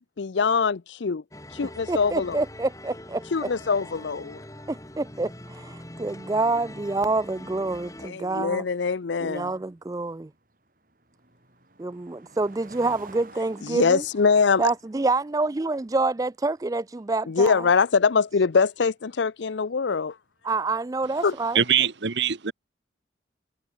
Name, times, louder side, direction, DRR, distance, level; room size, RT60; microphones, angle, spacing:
voice 1, 0.2-1.2 1.5-2.4 3.3-4.4 8.0-9.5 13.6-14.7 17.3-20.1 21.2-21.3, left 5 dB, 80° left, 0.6 m, -23 dB
sound 1, 1.3-8.1, left 1 dB, 20° left, 6.3 m, -43 dB
voice 2, 1.9-3.2 4.7-8.7 9.2-10.3 11.8-14.0 14.6-17.7 20.4-21.6, right 3 dB, 20° right, 0.4 m, -27 dB
sound 2, 8.0-20.7, right 2 dB, 50° right, 5.9 m, -54 dB
voice 3, 21.5-22.5, right 8 dB, 75° right, 1.2 m, -23 dB
head